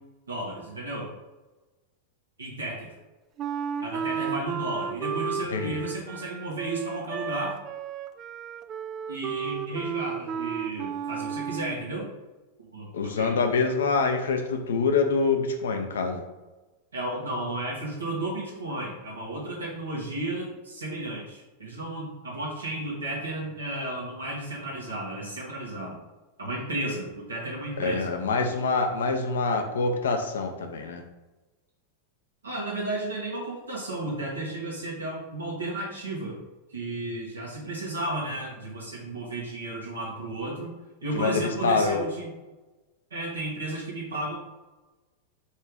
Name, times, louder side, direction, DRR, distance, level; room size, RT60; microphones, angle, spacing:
voice 1, 0.3-1.1 2.4-2.9 3.8-7.6 9.1-12.1 12.6-13.4 16.9-26.0 26.4-28.5 32.4-36.4 36.7-40.7 41.0-42.3 43.1-44.4, right 1 dB, 70° right, -4 dB, 1.4 m, -33 dB
Wind instrument woodwind instrument, 3.4-11.8, right 7 dB, 30° right, 0.4 m, -33 dB
voice 2, 12.9-16.2 27.8-31.0 41.1-42.0, left 4 dB, 65° left, 5 dB, 0.9 m, -25 dB
5.5 x 3.3 x 5.1 m, 1.1 s
figure-of-eight pair, 90°, 0 cm